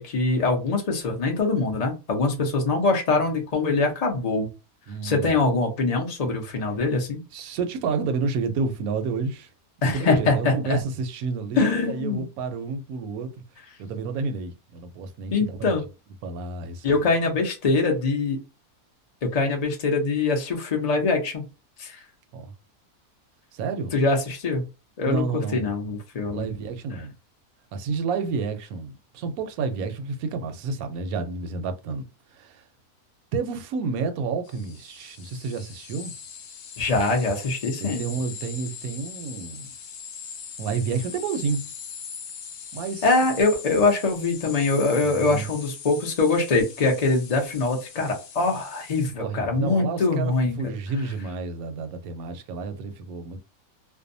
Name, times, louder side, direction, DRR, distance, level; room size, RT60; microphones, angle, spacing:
voice 1, 0.0-4.5 5.0-7.2 9.8-10.8 11.5-12.2 15.3-15.8 16.8-18.4 19.2-21.5 21.8-22.0 23.9-24.7 25.0-26.5 36.8-38.0 43.0-50.7, left 3 dB, 45° left, 0.5 m, -23 dB
voice 2, 4.9-5.5 7.3-9.5 9.8-13.4 13.8-15.7 16.2-17.1 22.3-22.5 23.5-23.9 25.1-25.7 26.3-27.1 27.7-32.1 32.4-32.6 33.3-36.1 37.8-39.7 40.6-41.7 42.7-43.1 45.0-45.5 49.2-53.4, right 4 dB, 75° right, 1.0 m, -30 dB
sound 1, 34.5-49.1, left 6 dB, 75° left, 1.1 m, -41 dB
2.6 x 2.1 x 2.6 m
omnidirectional pair, 1.6 m